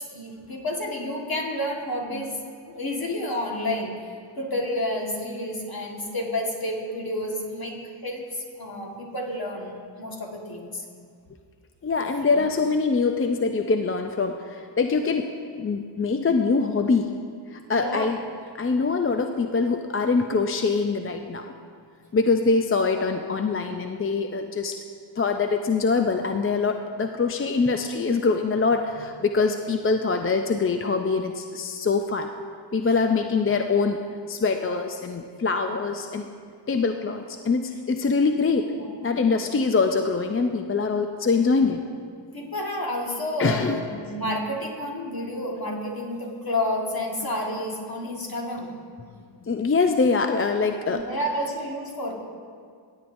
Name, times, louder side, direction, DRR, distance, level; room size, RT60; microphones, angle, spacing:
voice 1, 0.1-2.3 2.7-3.9 4.4-7.8 8.0-10.8 12.2-12.4 17.7-18.1 38.7-39.2 42.3-48.8 50.9-52.1, left 1 dB, 45° left, -1 dB, 1.6 m, -30 dB
voice 2, 11.8-17.1 17.5-18.2 18.6-21.5 22.1-24.8 25.2-32.3 32.7-34.0 34.3-36.3 36.7-38.7 39.0-41.8 43.4-43.8 49.4-51.0, left 4 dB, 30° left, 5 dB, 0.4 m, -24 dB
16.5 x 8.6 x 2.6 m, 2.1 s
wide cardioid pair, 65°, 48 cm